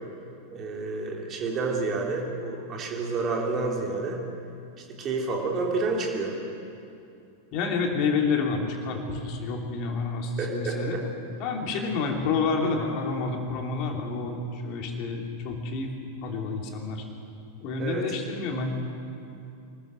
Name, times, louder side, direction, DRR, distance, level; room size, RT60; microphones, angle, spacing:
voice 1, 0.5-4.2 5.0-6.3 10.4-11.0 17.8-18.0, right 3 dB, 30° right, -1 dB, 3.5 m, -29 dB
voice 2, 7.5-11.0 11.4-15.9 16.2-17.0 17.6-18.7, left 4 dB, 40° left, 2 dB, 3.0 m, -29 dB
24.5 x 13.5 x 7.9 m, 2.6 s
figure-of-eight pair, 90°, 0 cm